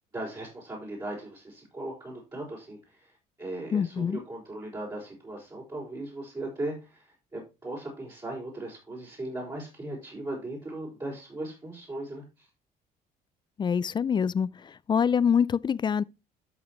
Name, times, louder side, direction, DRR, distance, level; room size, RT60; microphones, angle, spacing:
voice 1, 0.1-12.5, right 1 dB, 25° right, 5.0 m, -38 dB
voice 2, 3.7-4.2 13.6-16.0, left 7 dB, 25° left, 0.3 m, -25 dB
13.0 x 6.1 x 3.0 m
cardioid pair, 110°, 17 cm